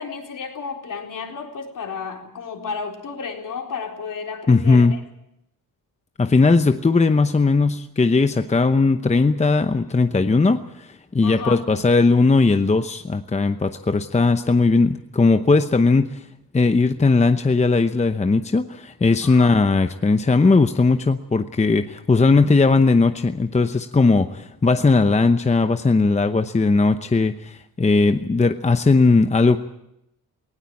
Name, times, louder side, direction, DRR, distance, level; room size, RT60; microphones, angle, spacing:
voice 1, 0.0-5.0 11.2-11.6 19.2-19.6, left 5 dB, 60° left, 2 dB, 3.9 m, -32 dB
voice 2, 4.5-5.0 6.2-16.2 16.5-29.6, left 3 dB, 20° left, 8 dB, 0.9 m, -18 dB
19.0 x 17.0 x 8.7 m, 0.83 s
cardioid pair, 95°, 37 cm